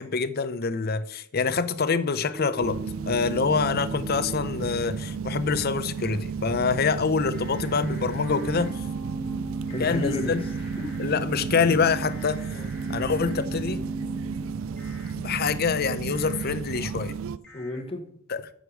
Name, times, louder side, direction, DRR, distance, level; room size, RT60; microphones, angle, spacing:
voice 1, 0.0-2.8 3.1-8.8 9.8-10.4 11.0-12.4 12.9-13.8 15.1-17.1 18.3-18.4, left 5 dB, 45° left, 0.6 m, -26 dB
sound 1, 2.3-5.6 6.5-6.6 7.9-15.6, right 1 dB, 25° right, 2.1 m, -39 dB
sound 2, 2.6-17.4, right 6 dB, 75° right, 0.4 m, -33 dB
sound 3, 7.3-8.7 9.7-11.0 12.0-13.4 14.8-15.1 16.1-16.4 17.4-17.8, left 1 dB, 5° left, 2.6 m, -49 dB
voice 2, 9.7-11.1 12.5-12.7 17.5-18.0, left 2 dB, 25° left, 1.2 m, -34 dB
8.1 x 6.6 x 6.2 m
head